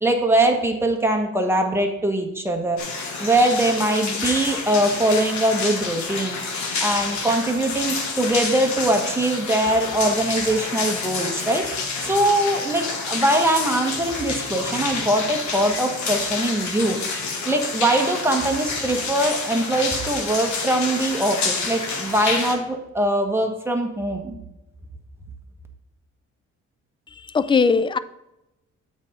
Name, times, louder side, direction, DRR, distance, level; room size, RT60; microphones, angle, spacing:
voice 1, 0.0-2.9 3.2-6.4 6.8-11.7 12.0-17.0 17.4-24.4, right 1 dB, 10° right, 2 dB, 1.3 m, -22 dB
sound 1, 2.8-22.5, left 4 dB, 70° left, 1.6 m, -28 dB
voice 2, 27.1-28.0, left 5 dB, 15° left, 14 dB, 0.3 m, -20 dB
8.1 x 4.2 x 5.3 m, 0.94 s
cardioid pair, 90°, 30 cm